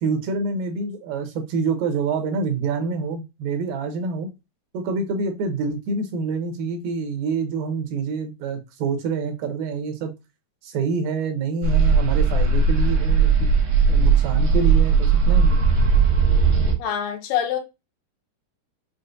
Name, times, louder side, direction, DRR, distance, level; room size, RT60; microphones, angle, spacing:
voice 1, 0.0-4.3 4.7-10.1 10.6-13.5 13.9-15.6, right 4 dB, 85° right, 2.5 m, -26 dB
sound 1, 11.6-16.7, right 5 dB, 70° right, 1.5 m, -18 dB
voice 2, 16.8-17.6, left 9 dB, 80° left, 2.4 m, -25 dB
6.3 x 2.1 x 2.5 m
omnidirectional pair, 4.0 m